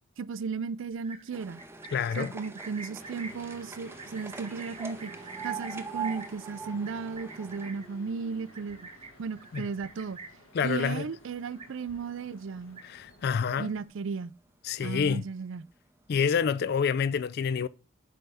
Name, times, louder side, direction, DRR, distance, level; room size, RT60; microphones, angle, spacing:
voice 1, 0.2-1.6 2.2-5.1 5.4-8.9 9.2-10.2 10.6-12.8 13.6-14.3 14.8-15.7, right 5 dB, 60° right, 0.4 m, -35 dB
Livestock farm animals working animals, 0.9-10.5 10.9-11.2 11.4-12.1 12.5-13.2, right 4 dB, 30° right, 0.9 m, -47 dB
sound 1, 1.3-9.6 9.9-10.8 11.5-11.6 11.9-12.0 12.3-12.4 13.2-13.4 13.9-14.0 14.7-14.8 15.3-15.4, right 5 dB, 10° right, 0.5 m, -43 dB
voice 2, 1.9-2.3 9.5-9.7 10.5-11.1 12.8-13.7 14.6-15.2 16.1-17.7, left 6 dB, 50° left, 0.3 m, -27 dB
sound 2, 3.0-13.9, left 2 dB, 80° left, 1.7 m, -55 dB
7.6 x 3.4 x 5.5 m
head